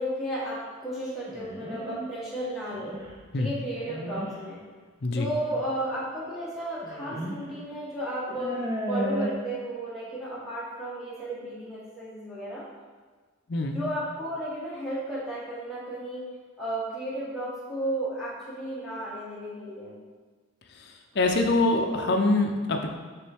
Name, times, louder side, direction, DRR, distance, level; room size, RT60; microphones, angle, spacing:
voice 1, 0.0-3.0 3.3-4.6 5.1-12.6 13.7-16.3 16.6-20.0, right 1 dB, ahead, -9 dB, 1.2 m, -33 dB
sound 1, 1.3-2.0 2.7-3.1 3.7-4.3 5.5-5.7 6.8-7.4 7.7-7.8 8.3-9.3, right 1 dB, 20° right, 0.8 m, -33 dB
voice 2, 21.1-22.9, left 2 dB, 50° left, 3 dB, 0.6 m, -24 dB
9.1 x 3.4 x 3.4 m, 1.4 s
head